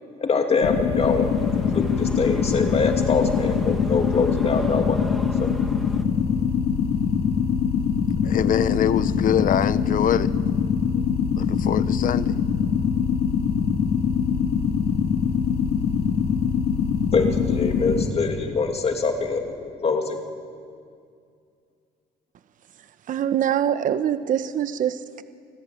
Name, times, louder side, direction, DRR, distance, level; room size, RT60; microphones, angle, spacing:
voice 1, 0.2-1.3 1.7-5.0 5.4-5.5 17.1-20.2, left 4 dB, 35° left, 2.8 m, -24 dB
sound 1, 0.6-18.1, left 7 dB, 75° left, 2.5 m, -23 dB
sound 2, 1.0-6.0, left 1 dB, ahead, 2.0 m, -37 dB
voice 2, 8.2-10.3 11.4-12.3, left 10 dB, 55° left, 1.0 m, -24 dB
voice 3, 23.1-25.2, right 10 dB, 50° right, 1.0 m, -24 dB
28.0 x 20.5 x 8.5 m
cardioid pair, 110°, 17 cm